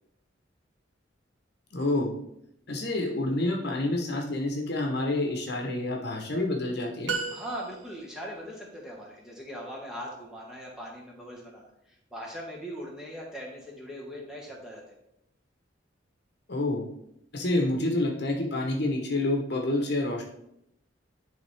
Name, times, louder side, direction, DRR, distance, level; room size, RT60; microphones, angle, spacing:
voice 1, 1.7-2.1 2.7-7.1 16.5-16.8 17.3-20.2, left 2 dB, 60° left, 1 dB, 1.1 m, -28 dB
sound 1, 7.1-8.2, right 4 dB, 75° right, 0.9 m, -34 dB
voice 2, 7.3-14.9, equal, 5° right, -4 dB, 1.6 m, -40 dB
10.5 x 3.7 x 3.5 m, 0.78 s
head